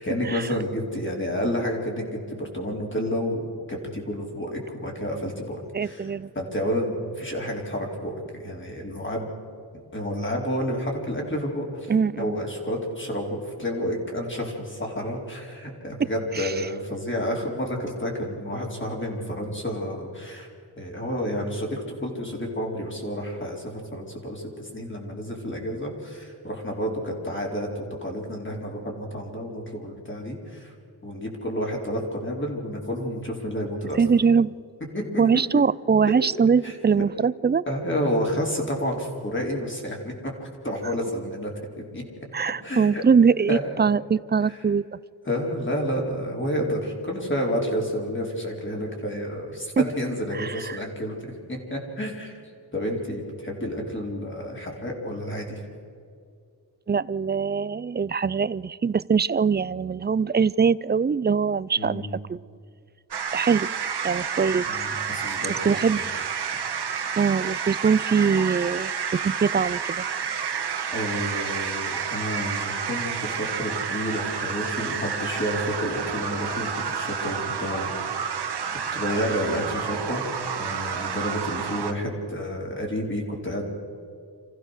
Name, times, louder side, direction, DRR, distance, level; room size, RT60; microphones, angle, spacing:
voice 1, 0.0-9.3 9.9-11.9 12.2-20.5 20.8-30.7 31.0-34.0 34.9-35.2 36.6-37.0 37.7-41.5 41.8-42.0 42.6-43.0 43.5-43.6 44.4-44.6 45.2-52.4 52.7-55.7 61.8-62.2 64.6-66.1 70.9-78.3 78.7-80.2 80.5-83.7, equal, 30° left, 0 dB, 4.4 m, -30 dB
voice 2, 5.7-6.3 11.9-12.4 16.3-16.5 34.0-34.5 35.2-37.6 42.3-45.0 49.8-49.9 50.3-50.8 56.9-62.4 63.3-63.7 64.0-64.7 65.6-66.0 67.2-68.9 69.2-70.0, right 6 dB, 25° right, 19 dB, 0.4 m, -22 dB
sound 1, 63.1-81.9, right 7 dB, 75° right, 1.6 m, -30 dB
26.5 x 15.5 x 6.6 m, 2.3 s
wide cardioid pair, 90°, 41 cm